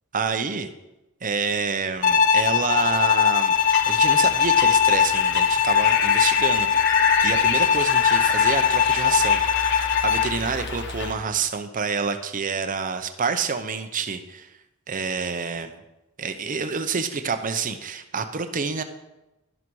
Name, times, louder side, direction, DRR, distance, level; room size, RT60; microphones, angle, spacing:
voice 1, 0.1-0.7 1.2-3.5 3.9-9.7 10.0-14.5 14.9-15.8 16.2-18.8, right 5 dB, 40° right, 8 dB, 0.7 m, -28 dB
Bowed string instrument, 2.0-10.4, left 7 dB, 35° left, 0.6 m, -20 dB
sound 1, 3.5-11.1, left 4 dB, 55° left, 1.2 m, -29 dB
11.5 x 11.0 x 4.7 m, 0.98 s
head